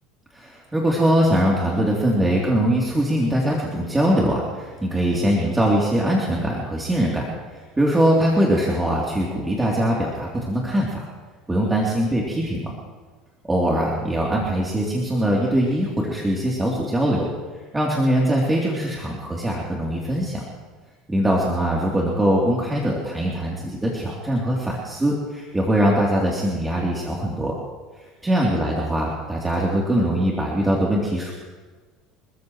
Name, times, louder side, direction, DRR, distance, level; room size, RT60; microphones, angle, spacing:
voice 1, 0.3-11.1 11.5-12.7 13.5-17.3 17.7-20.4 21.1-27.5 28.2-31.3, right 1 dB, 10° right, -4 dB, 3.3 m, -22 dB
28.5 x 14.5 x 3.2 m, 1.4 s
supercardioid pair, 105°, 0 cm